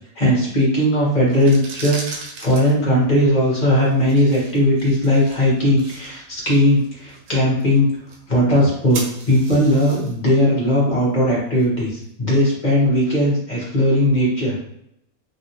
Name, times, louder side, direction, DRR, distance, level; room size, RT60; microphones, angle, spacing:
voice 1, 0.2-2.0 2.4-7.9 8.3-9.0 9.3-14.6, left 1 dB, 35° left, -6 dB, 1.1 m, -18 dB
sound 1, 1.2-12.1, right 3 dB, 65° right, 1.0 m, -39 dB
3.2 x 2.5 x 2.8 m, 0.76 s
omnidirectional pair, 1.6 m